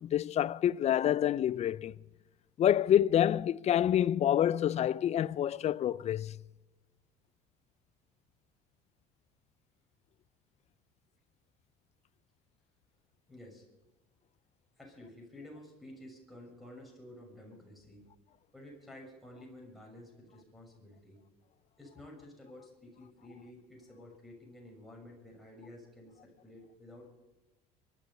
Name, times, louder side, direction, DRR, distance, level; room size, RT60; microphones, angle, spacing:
voice 1, 0.0-2.0 2.6-6.4, left 10 dB, 40° left, 0.4 m, -27 dB
voice 2, 13.3-13.7 14.8-18.0 18.5-21.2 21.8-27.1, left 1 dB, ahead, 6.7 m, -52 dB
23.5 x 10.5 x 5.6 m
supercardioid pair, 85°, 17 cm